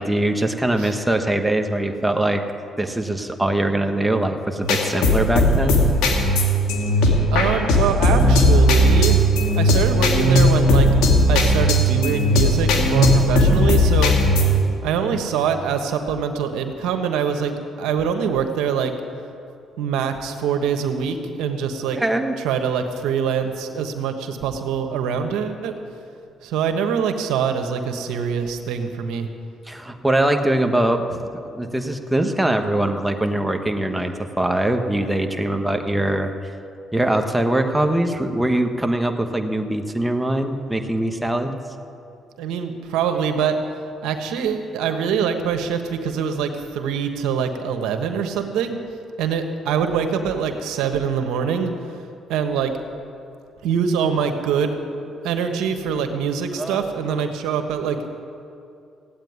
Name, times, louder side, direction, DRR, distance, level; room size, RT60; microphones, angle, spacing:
voice 1, 0.0-2.4 2.8-5.8 21.9-22.3 29.7-36.3 36.9-41.5 56.6-57.1, right 1 dB, 10° right, 5 dB, 1.4 m, -22 dB
sound 1, 4.6-14.6, equal, 85° left, 2.3 m, -17 dB
voice 2, 7.3-9.3 9.5-10.9 11.3-14.2 14.8-18.9 19.8-22.0 22.4-25.8 26.4-29.3 42.4-43.6 44.0-48.8 49.2-52.0 52.3-52.8 53.6-54.8 55.2-58.0, right 7 dB, 85° right, 6 dB, 1.3 m, -24 dB
16.0 x 8.7 x 9.6 m, 2.5 s
cardioid pair, 80°, 0 cm